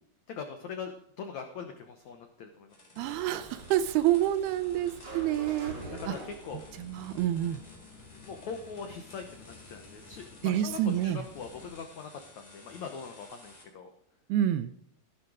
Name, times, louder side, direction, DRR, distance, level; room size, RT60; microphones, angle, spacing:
voice 1, 0.3-2.8 5.9-6.6 8.2-13.9, left 6 dB, 85° left, 5 dB, 1.6 m, -42 dB
sound 1, 2.7-13.6, left 1 dB, 15° left, 4.4 m, -55 dB
sound 2, 3.0-8.2, right 1 dB, 30° right, 3.9 m, -46 dB
voice 2, 3.0-5.8 6.1-6.2 6.8-7.6 10.4-11.3 14.3-14.7, right 12 dB, 80° right, 13 dB, 2.4 m, -28 dB
sound 3, 6.5-11.7, left 5 dB, 55° left, 4.1 m, -53 dB
15.5 x 11.5 x 4.9 m, 0.69 s
omnidirectional pair, 5.0 m